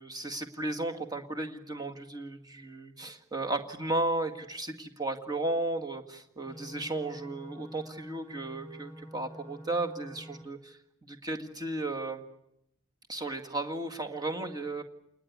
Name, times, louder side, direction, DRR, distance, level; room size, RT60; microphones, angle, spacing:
voice 1, 0.0-12.2 13.1-14.8, right 2 dB, 20° right, 4 dB, 2.1 m, -34 dB
sound 1, 6.5-10.4, equal, 10° left, 7.3 m, -48 dB
28.0 x 20.0 x 9.7 m, 0.81 s
head